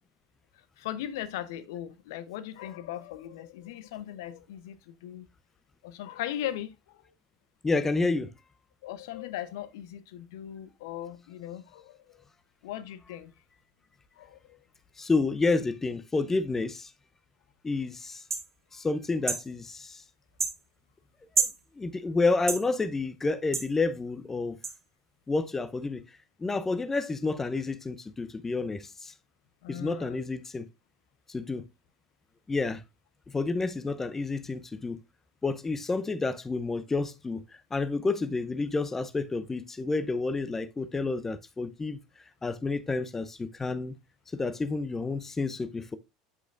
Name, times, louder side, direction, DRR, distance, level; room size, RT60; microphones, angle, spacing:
voice 1, 0.8-5.3 5.8-7.0 8.8-12.2 12.6-13.3 14.2-14.6 29.6-30.2, left 12 dB, 65° left, 0.7 m, -38 dB
voice 2, 7.6-8.3 15.0-16.9 17.6-18.2 18.7-20.0 21.8-24.6 25.3-26.0 26.4-29.1 29.7-30.7 31.3-31.6 32.5-32.8 33.3-35.0 35.4-37.4 37.7-42.0 42.4-43.9 44.3-46.0, left 3 dB, 15° left, 0.7 m, -29 dB
sound 1, 18.3-18.5 19.3-19.5 20.4-20.6 21.4-21.6 22.5-22.6 23.5-23.7 24.6-24.7, right 4 dB, 85° right, 1.0 m, -28 dB
8.4 x 8.0 x 2.5 m
figure-of-eight pair, 75°, 2 cm